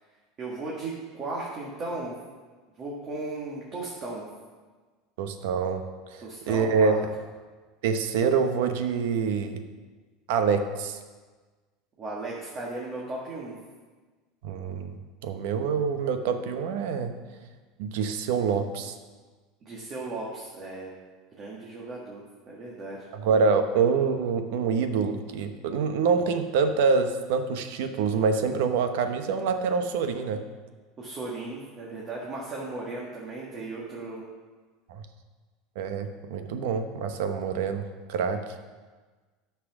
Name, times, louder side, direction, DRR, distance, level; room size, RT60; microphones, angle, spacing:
voice 1, 0.4-2.1 2.8-4.3 6.2-7.0 12.0-13.6 19.6-20.9 21.3-23.1 31.0-34.2, right 2 dB, 30° right, -4 dB, 1.7 m, -36 dB
voice 2, 5.2-5.8 6.1-6.9 7.8-9.6 10.3-11.0 14.4-15.0 15.2-17.1 17.8-18.9 23.1-30.4 34.9-35.0 35.8-37.8 38.1-38.4, right 5 dB, 75° right, 8 dB, 0.9 m, -26 dB
10.0 x 5.9 x 6.0 m, 1.4 s
supercardioid pair, 150°, 0 cm